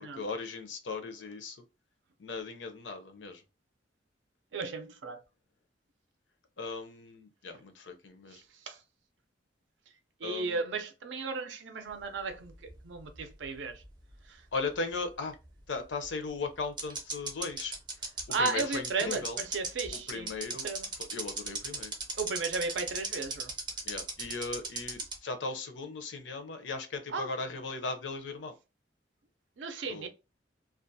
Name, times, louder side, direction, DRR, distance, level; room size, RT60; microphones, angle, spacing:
voice 1, 0.1-1.6 2.2-3.4 6.6-8.4 10.2-10.6 14.5-15.3 15.7-17.8 18.4-19.4 19.9-21.9 23.8-28.5 29.9-30.1, left 4 dB, 80° left, 0.6 m, -37 dB
voice 2, 4.5-5.2 8.7-8.8 10.2-13.7 18.3-20.3 20.6-20.9 22.2-23.5 27.1-27.3 29.6-30.1, right 4 dB, 80° right, 0.5 m, -34 dB
sound 1, 12.3-13.8 14.1-14.2 16.0-16.1 16.8-25.2, right 3 dB, 25° right, 0.6 m, -36 dB
2.4 x 2.2 x 2.6 m
head